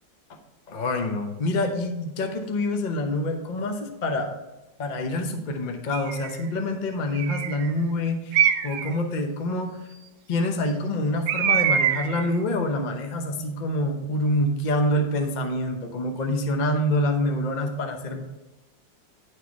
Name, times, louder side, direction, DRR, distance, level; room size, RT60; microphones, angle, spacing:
voice 1, 0.7-4.3 4.8-9.8 10.3-18.2, left 1 dB, 45° left, 4 dB, 0.6 m, -26 dB
Bird, 5.9-6.4 7.1-7.7 8.3-8.9 11.3-12.3, right 9 dB, 75° right, 0.8 m, -24 dB
9.9 x 4.6 x 4.6 m, 1.0 s
omnidirectional pair, 2.0 m